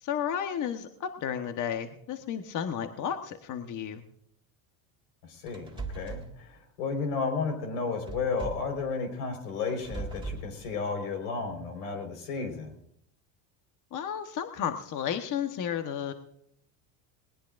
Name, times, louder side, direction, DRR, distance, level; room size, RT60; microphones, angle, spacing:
voice 1, 0.0-4.0 13.9-16.1, left 8 dB, 45° left, 6 dB, 1.3 m, -32 dB
voice 2, 5.3-12.8, left 4 dB, 90° left, 5 dB, 4.7 m, -33 dB
sound 1, 5.5-6.3 8.1-8.7 9.7-10.5, right 3 dB, 10° right, 2.0 m, -38 dB
20.0 x 19.5 x 2.6 m, 0.71 s
supercardioid pair, 115°, 44 cm